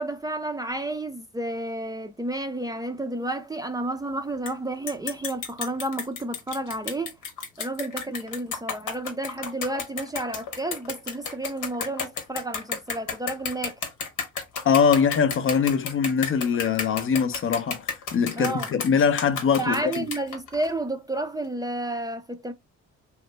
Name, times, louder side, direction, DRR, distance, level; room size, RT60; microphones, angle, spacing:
voice 1, 0.0-7.2 7.6-13.8 18.4-18.7 19.6-22.5, right 1 dB, 15° right, 0.4 m, -31 dB
sound 1, 4.5-4.6 4.9-20.7, left 6 dB, 85° left, 0.9 m, -33 dB
voice 2, 14.6-20.1, left 6 dB, 45° left, 0.5 m, -22 dB
3.0 x 2.0 x 3.2 m
cardioid pair, 90°, 30 cm